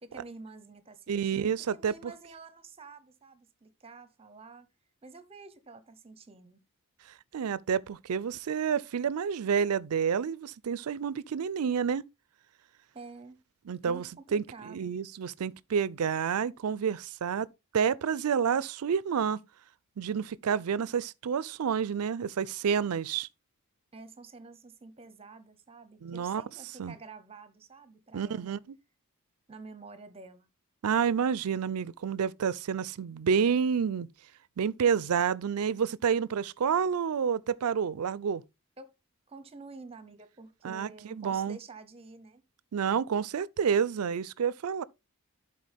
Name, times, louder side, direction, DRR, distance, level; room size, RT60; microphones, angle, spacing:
voice 1, 0.0-4.7 5.0-6.6 12.9-13.4 13.8-14.9 23.9-28.6 29.5-30.5 38.8-38.9 39.3-42.4, right 3 dB, 25° right, 0.8 m, -49 dB
voice 2, 1.1-2.1 7.3-12.0 13.7-17.5 17.7-19.4 20.0-23.3 26.0-26.4 26.8-26.9 28.1-28.6 30.8-34.1 34.6-38.4 40.6-41.6 42.7-44.8, right 7 dB, 80° right, 0.4 m, -29 dB
11.5 x 4.3 x 3.4 m
head